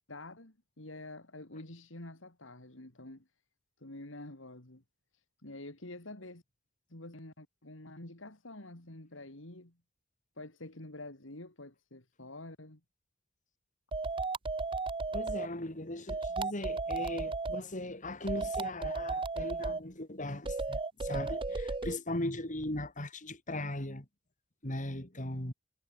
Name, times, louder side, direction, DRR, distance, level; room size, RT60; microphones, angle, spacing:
voice 1, 0.1-3.3 3.8-4.8 5.4-6.4 6.9-9.7 10.4-12.8, left 2 dB, 65° left, 3.2 m, -47 dB
sound 1, 13.9-15.5 16.1-17.6 18.3-19.8 20.4-22.0, right 3 dB, 25° right, 0.7 m, -34 dB
voice 2, 15.1-24.1 24.6-25.5, left 1 dB, 40° left, 4.2 m, -38 dB
head